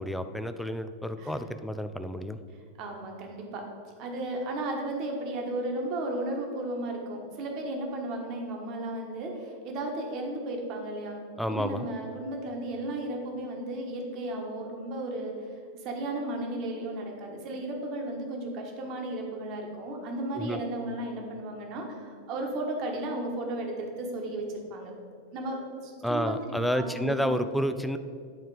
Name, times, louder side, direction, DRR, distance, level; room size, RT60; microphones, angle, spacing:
voice 1, 0.0-2.4 11.4-11.9 20.4-20.6 26.0-28.0, equal, ahead, 9 dB, 0.4 m, -30 dB
voice 2, 2.8-3.6 4.0-11.2 11.5-15.3 15.8-24.9 25.3-26.4 26.7-27.4, right 1 dB, 40° right, 1 dB, 1.3 m, -34 dB
9.5 x 4.3 x 4.8 m, 2.3 s
figure-of-eight pair, 90°, 0 cm